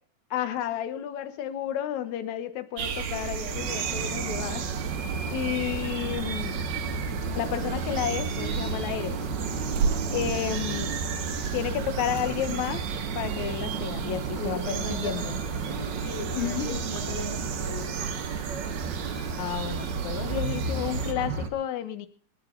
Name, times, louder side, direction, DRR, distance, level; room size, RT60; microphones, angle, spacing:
voice 1, 0.3-4.7 5.3-6.6 7.3-9.2 10.1-10.9 11.5-12.9 13.1-15.4 16.3-16.8 19.4-22.1, left 10 dB, 60° left, 10 dB, 2.2 m, -31 dB
sound 1, 2.8-21.1, right 7 dB, 80° right, 3.4 m, -33 dB
sound 2, 3.5-21.5, right 3 dB, 50° right, 1.3 m, -34 dB
voice 2, 14.4-18.0, left 2 dB, 75° left, 3 dB, 5.9 m, -38 dB
27.5 x 9.5 x 3.9 m, 0.42 s
omnidirectional pair, 4.3 m